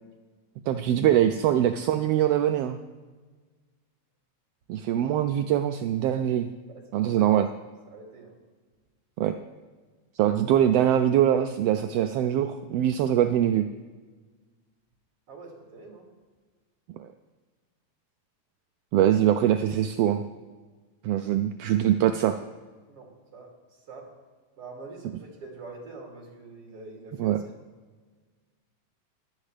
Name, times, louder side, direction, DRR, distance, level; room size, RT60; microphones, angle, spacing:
voice 1, 0.7-2.8 4.7-6.5 6.9-7.5 9.2-9.3 10.2-13.6 17.0-17.1 18.9-20.2 21.0-22.4 27.2-27.4, right 11 dB, 85° right, 8 dB, 1.3 m, -23 dB
voice 2, 6.7-7.2 7.9-8.4 15.3-16.1 22.9-23.5 23.9-24.1 24.6-27.4, right 3 dB, 50° right, -2 dB, 3.6 m, -45 dB
16.0 x 12.0 x 3.3 m, 1.4 s
omnidirectional pair, 3.3 m